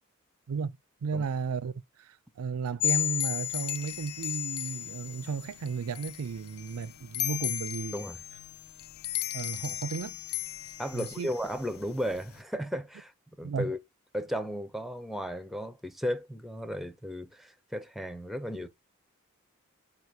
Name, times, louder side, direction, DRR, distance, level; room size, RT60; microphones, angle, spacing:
voice 1, 1.0-1.7 2.0-8.0 9.3-10.2 10.9-11.3 13.4-13.7, right 5 dB, 75° right, 0.4 m, -34 dB
sound 1, 2.8-12.4, left 13 dB, 75° left, 0.5 m, -35 dB
voice 2, 10.8-13.1 13.4-13.8 14.1-18.7, equal, ahead, 0.6 m, -35 dB
4.6 x 4.2 x 2.7 m
head